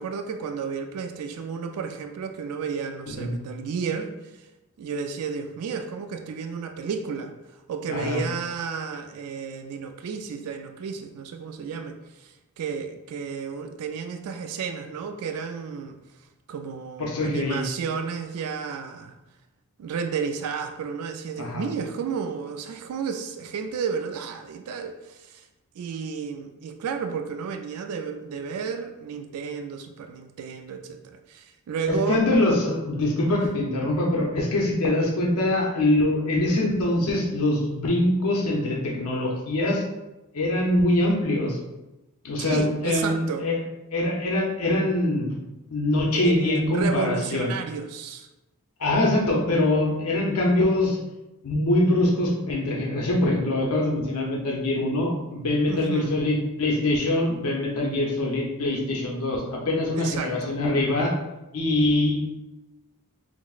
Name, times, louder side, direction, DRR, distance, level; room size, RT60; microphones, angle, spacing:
voice 1, 0.0-4.1 4.8-7.3 7.7-16.0 16.5-19.1 19.8-25.5 25.8-32.2 33.3-33.4 42.4-43.5 46.1-48.3 55.7-56.1 59.9-60.5, right 6 dB, 75° right, 6 dB, 0.3 m, -32 dB
voice 2, 7.9-8.2 17.0-17.6 21.4-21.6 31.9-39.8 40.3-41.6 42.2-43.6 43.9-45.3 45.7-47.5 48.8-51.0 51.4-61.1 61.5-62.2, left 1 dB, 70° left, -2 dB, 0.7 m, -23 dB
5.9 x 2.0 x 2.4 m, 0.99 s
head